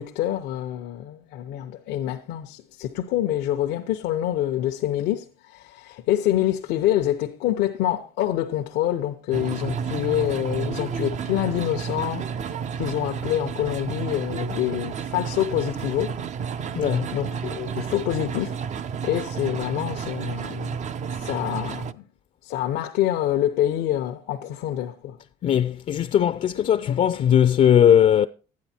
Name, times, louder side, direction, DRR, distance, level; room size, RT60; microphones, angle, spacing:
voice 1, 0.0-16.1 16.6-16.7 17.1-18.6 19.0-20.8 21.2-22.0 22.4-25.2, left 12 dB, 85° left, 0.9 m, -26 dB
sound 1, 9.3-21.9, right 7 dB, 45° right, 0.6 m, -31 dB
voice 2, 16.7-17.1 25.4-28.3, left 9 dB, 45° left, 0.5 m, -19 dB
12.0 x 9.6 x 4.3 m
cardioid pair, 110°, 17 cm